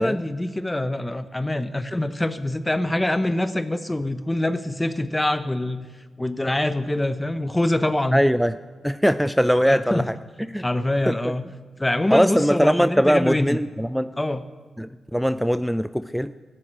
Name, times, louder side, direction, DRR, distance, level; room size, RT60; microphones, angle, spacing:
voice 1, 0.0-5.9 6.2-8.2 9.6-10.1 10.6-11.4 11.8-13.6 14.2-14.4, left 1 dB, 15° left, 11 dB, 0.9 m, -25 dB
voice 2, 8.1-8.5 8.8-10.2 10.5-10.7 11.1-11.3 12.1-14.1 14.8-16.3, equal, ahead, 13 dB, 0.5 m, -21 dB
13.0 x 8.8 x 8.9 m, 1.4 s
supercardioid pair, 40°, 0 cm